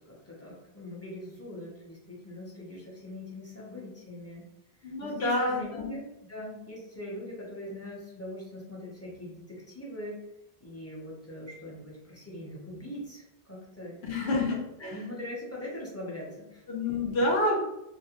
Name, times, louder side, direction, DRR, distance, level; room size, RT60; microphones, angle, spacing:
voice 1, 0.0-4.5 4.8-10.2 10.6-14.3 14.8-16.6, left 1 dB, 20° left, -6 dB, 0.5 m, -41 dB
voice 2, 4.8-5.9 14.0-15.0 16.7-17.6, left 2 dB, 80° left, -1 dB, 0.9 m, -28 dB
2.4 x 2.1 x 2.8 m, 0.88 s
omnidirectional pair, 1.0 m